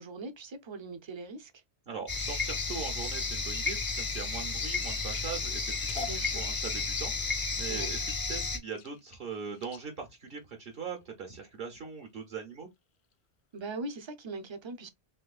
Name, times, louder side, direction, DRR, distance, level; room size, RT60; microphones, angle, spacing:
voice 1, 0.0-1.5 6.0-6.4 7.7-7.9 13.5-14.9, right 3 dB, 35° right, 0.5 m, -41 dB
voice 2, 1.9-12.7, right 6 dB, 60° right, 1.0 m, -41 dB
sound 1, 2.1-8.6, left 3 dB, 25° left, 0.5 m, -32 dB
sound 2, 3.1-11.4 12.0-12.3 12.8-13.1 13.6-13.7 14.0-14.1, left 6 dB, 80° left, 0.9 m, -50 dB
3.5 x 3.1 x 2.3 m
omnidirectional pair, 1.1 m